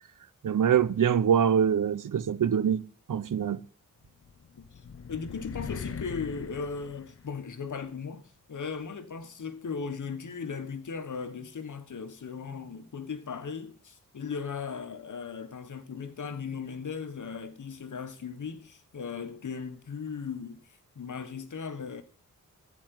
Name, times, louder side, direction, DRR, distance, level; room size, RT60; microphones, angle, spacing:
voice 1, 0.4-3.6, right 8 dB, 70° right, 0.8 m, -24 dB
sound 1, 4.2-7.7, left 6 dB, 45° left, 0.7 m, -41 dB
voice 2, 5.1-22.0, left 5 dB, 65° left, 1.6 m, -37 dB
15.0 x 5.2 x 9.1 m
cardioid pair, 75°, 33 cm